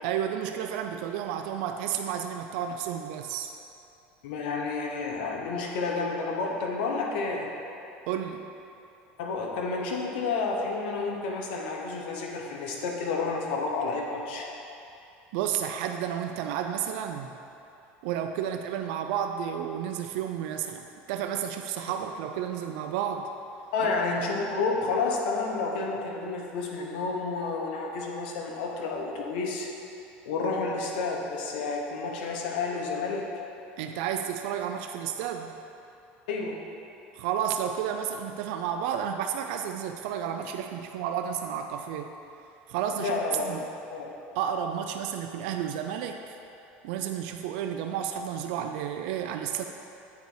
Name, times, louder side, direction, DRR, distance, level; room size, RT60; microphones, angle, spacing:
voice 1, 0.0-3.5 8.1-8.4 15.3-17.4 18.0-23.3 23.8-23.9 33.8-35.5 37.1-42.1 42.7-43.7 44.4-46.4 46.8-49.7, right 9 dB, 75° right, 5 dB, 0.4 m, -31 dB
voice 2, 4.2-7.5 9.2-14.5 23.7-29.7 30.2-33.3 36.3-36.6 43.0-43.5 43.9-44.1, left 4 dB, 85° left, 0 dB, 1.0 m, -30 dB
8.1 x 4.1 x 4.8 m, 2.7 s
supercardioid pair, 110°, 5 cm